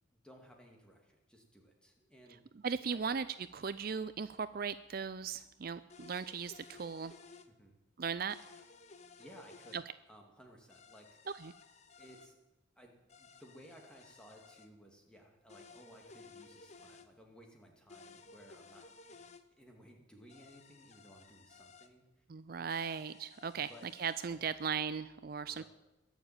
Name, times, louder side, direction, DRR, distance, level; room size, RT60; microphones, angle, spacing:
voice 1, 0.2-2.4 2.9-3.0 7.5-7.8 8.5-8.6 9.2-11.1 12.0-12.4 12.8-18.9 19.6-22.2 23.6-23.9 24.3-24.5 25.5-25.6, equal, 5° left, 1 dB, 2.5 m, -58 dB
voice 2, 2.6-3.3 3.5-7.1 8.0-8.4 9.7-9.8 11.4-11.5 22.3-23.7 24.0-25.6, right 6 dB, 45° right, 14 dB, 0.4 m, -37 dB
sound 1, 5.9-7.5 8.3-9.8 10.7-12.3 13.1-14.7 15.5-17.1 17.9-19.4 20.3-21.9 22.7-24.3, left 4 dB, 35° left, 0.9 m, -57 dB
22.0 x 7.3 x 8.9 m, 1.1 s
head